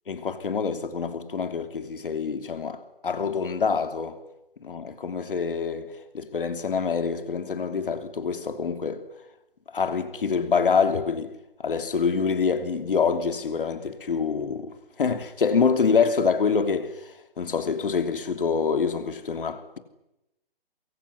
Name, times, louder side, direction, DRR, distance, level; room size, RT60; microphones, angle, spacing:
voice 1, 0.1-4.2 4.6-9.0 9.7-11.3 11.6-14.7 15.0-17.1 17.4-19.8, left 5 dB, 60° left, 3.0 m, -26 dB
25.0 x 22.5 x 9.7 m
hypercardioid pair, 155°, 30 cm